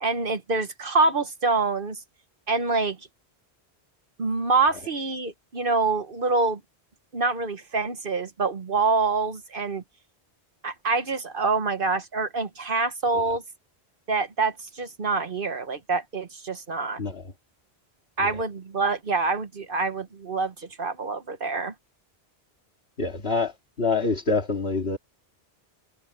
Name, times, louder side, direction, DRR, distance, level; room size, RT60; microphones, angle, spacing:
voice 1, 0.0-2.0 2.5-3.0 4.2-6.6 7.1-9.8 10.6-13.4 14.1-17.0 18.2-21.7, right 3 dB, 55° right, 1.3 m, -26 dB
voice 2, 23.0-23.5 23.8-25.0, left 3 dB, 70° left, 2.5 m, -25 dB
omnidirectional pair, 1.1 m